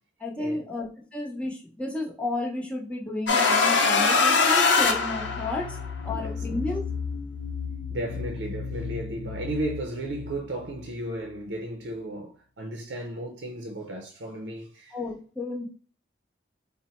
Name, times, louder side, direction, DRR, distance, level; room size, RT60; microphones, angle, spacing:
voice 1, 0.2-5.8 6.0-6.8 14.9-15.7, left 2 dB, 5° left, 0.8 m, -32 dB
sound 1, 3.3-5.8, left 4 dB, 85° left, 0.6 m, -21 dB
sound 2, 4.8-11.4, left 5 dB, 55° left, 0.3 m, -35 dB
voice 2, 6.1-6.4 7.9-15.0, right 1 dB, 75° right, 0.6 m, -34 dB
4.0 x 2.1 x 4.2 m
head